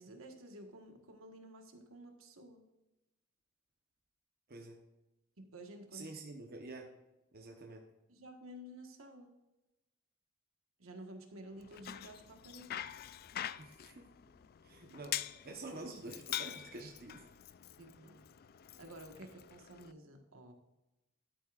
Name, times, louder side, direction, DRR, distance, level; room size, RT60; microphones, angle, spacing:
voice 1, 0.0-2.6 5.4-6.1 8.1-9.3 10.8-12.7 17.8-18.2 18.8-20.5, right 1 dB, 75° right, 4 dB, 1.5 m, -52 dB
voice 2, 5.9-6.9 7.3-7.9 13.6-14.1 14.6-17.2, right 2 dB, 50° right, 1 dB, 1.1 m, -48 dB
Bicycle, 11.6-19.9, left 11 dB, 50° left, 0.4 m, -45 dB
12.0 x 8.5 x 2.5 m, 0.98 s
head